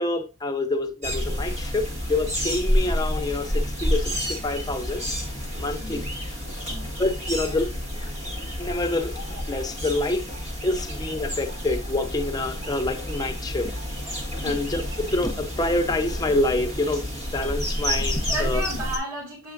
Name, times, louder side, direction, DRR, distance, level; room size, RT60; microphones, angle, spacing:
voice 1, 0.0-5.1 5.6-6.0 7.0-7.7 8.6-9.2 9.5-10.3 10.6-13.7 14.4-18.6, left 2 dB, 15° left, 0.7 m, -27 dB
sound 1, 1.0-19.0, equal, 30° right, 1.9 m, -29 dB
voice 2, 5.4-6.0 6.4-6.9 14.4-14.7 18.3-19.5, right 1 dB, 80° right, 2.7 m, -34 dB
7.6 x 5.5 x 2.5 m
head